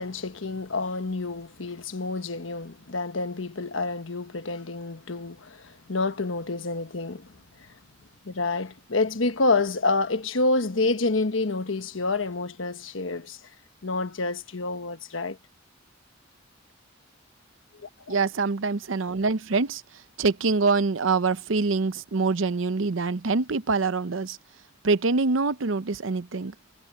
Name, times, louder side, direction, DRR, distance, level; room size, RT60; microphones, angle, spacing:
voice 1, 0.0-7.7 8.2-13.4 13.8-15.4 17.8-18.2, left 3 dB, 85° left, 1.3 m, -28 dB
voice 2, 18.1-19.8 20.2-24.4 24.8-26.5, right 4 dB, 80° right, 0.7 m, -25 dB
head